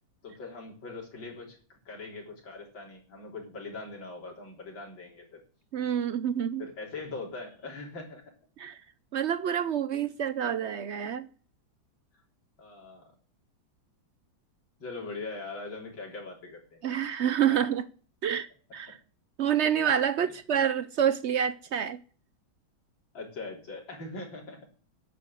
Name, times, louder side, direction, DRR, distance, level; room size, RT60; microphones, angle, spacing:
voice 1, 0.2-1.6 1.9-5.4 6.6-8.2 12.6-13.1 14.8-16.8 17.5-17.6 18.3-18.4 23.1-24.6, left 3 dB, 70° left, 4.4 m, -41 dB
voice 2, 5.7-6.7 8.6-8.8 9.1-11.3 16.8-17.8 18.2-19.0 19.4-22.0, right 9 dB, 90° right, 0.6 m, -28 dB
10.5 x 8.4 x 7.9 m
omnidirectional pair, 2.1 m